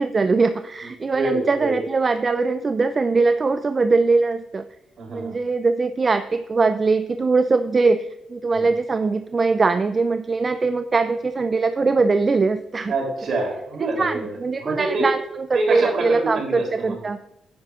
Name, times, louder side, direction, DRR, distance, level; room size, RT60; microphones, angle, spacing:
voice 1, 0.0-4.6 5.1-12.9 14.0-17.2, right 3 dB, 40° right, 10 dB, 0.4 m, -21 dB
voice 2, 1.1-1.8 5.0-5.4 8.5-8.7 12.9-15.1 15.5-17.0, right 2 dB, 60° right, 1 dB, 3.4 m, -26 dB
10.0 x 9.6 x 2.5 m, 0.85 s
supercardioid pair, 55°, 0 cm